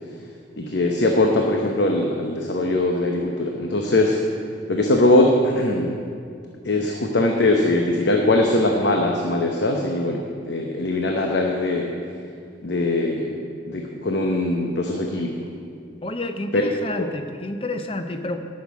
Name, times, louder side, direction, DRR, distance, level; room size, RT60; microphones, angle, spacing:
voice 1, 0.6-4.2 4.7-6.0 6.6-11.9 12.6-15.5 16.5-16.6 17.0-17.1, left 2 dB, 65° left, 2 dB, 0.9 m, -21 dB
voice 2, 16.0-18.4, left 2 dB, 30° left, 7 dB, 0.7 m, -29 dB
12.0 x 6.6 x 8.4 m, 2.3 s
head